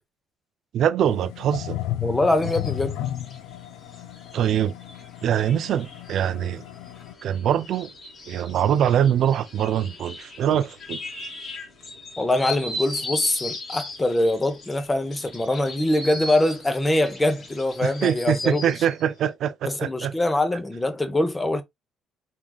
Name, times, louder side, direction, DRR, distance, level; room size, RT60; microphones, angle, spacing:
voice 1, 0.7-1.8 4.3-4.7 5.2-6.6 7.2-7.9 8.3-11.0 17.8-20.1, right 9 dB, 55° right, 0.4 m, -23 dB
sound 1, 1.1-7.1, left 13 dB, 85° left, 0.3 m, -34 dB
voice 2, 2.0-3.0 12.2-18.6 19.6-21.6, left 1 dB, 10° left, 0.7 m, -23 dB
sound 2, 2.4-19.0, left 2 dB, 35° left, 1.2 m, -38 dB
3.8 x 3.6 x 2.3 m
cardioid pair, 155°, 0 cm